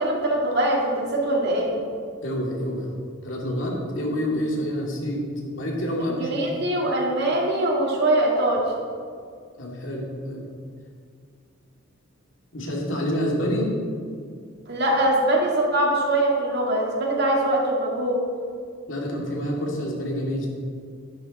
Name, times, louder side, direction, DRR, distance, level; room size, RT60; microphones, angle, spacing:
voice 1, 0.0-1.8 6.2-8.7 14.7-18.2, right 1 dB, 55° right, -2 dB, 2.4 m, -22 dB
voice 2, 2.2-2.8 3.2-5.2 5.5-6.6 9.6-10.5 12.5-13.7 18.9-20.5, equal, 65° left, -2 dB, 2.5 m, -27 dB
11.0 x 10.5 x 4.3 m, 2.2 s
head